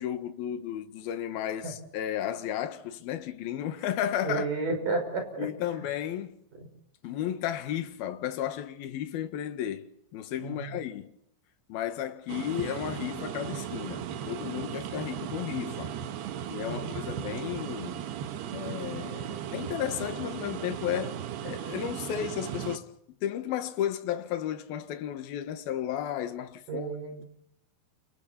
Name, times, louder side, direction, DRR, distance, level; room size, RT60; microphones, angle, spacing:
voice 1, 0.0-4.5 5.4-6.4 7.0-11.1 11.7-16.0 16.5-18.0 18.5-23.0 23.2-26.9, left 10 dB, 65° left, 3.0 m, -33 dB
voice 2, 4.2-5.5 6.5-6.7 10.4-10.8 16.7-16.9 21.0-21.1 26.7-27.3, right 3 dB, 45° right, 6.9 m, -32 dB
sound 1, 12.3-22.8, right 10 dB, 70° right, 3.0 m, -37 dB
29.5 x 25.5 x 4.4 m
omnidirectional pair, 5.5 m